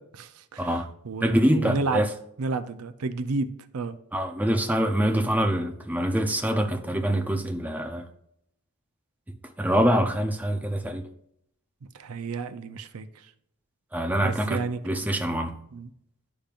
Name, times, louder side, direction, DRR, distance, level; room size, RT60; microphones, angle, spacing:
voice 1, 0.0-2.0 2.4-3.5 3.7-4.0 11.9-13.1 14.2-15.1 15.7-15.9, right 3 dB, 80° right, 0.6 m, -31 dB
voice 2, 0.6-0.9 1.2-2.1 4.1-8.0 9.6-11.1 13.9-15.6, equal, 5° right, 0.5 m, -25 dB
11.5 x 5.2 x 2.5 m
head